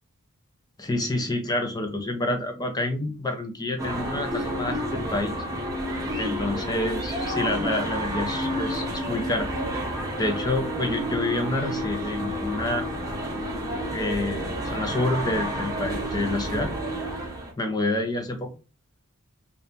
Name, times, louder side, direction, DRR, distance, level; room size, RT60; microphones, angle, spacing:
voice 1, 0.8-5.4 6.2-9.5 10.2-12.9 13.9-16.7 17.6-18.5, left 2 dB, 15° left, 4 dB, 0.6 m, -28 dB
sound 1, 3.8-17.5, equal, 15° right, 0.8 m, -30 dB
2.8 x 2.6 x 3.3 m, 0.30 s
head